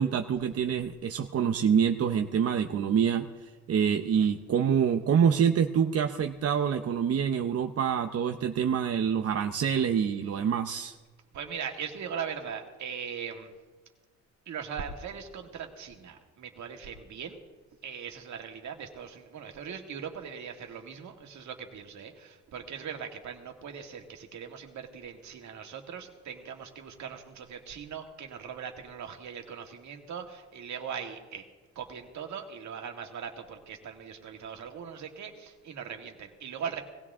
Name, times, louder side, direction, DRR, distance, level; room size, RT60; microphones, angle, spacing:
voice 1, 0.0-10.9, right 7 dB, 50° right, 6 dB, 0.8 m, -26 dB
voice 2, 11.3-13.5 14.5-17.4 17.8-31.4 31.8-36.8, right 7 dB, 70° right, 3 dB, 2.1 m, -40 dB
19.0 x 16.0 x 3.7 m, 1.3 s
cardioid pair, 90°, 30 cm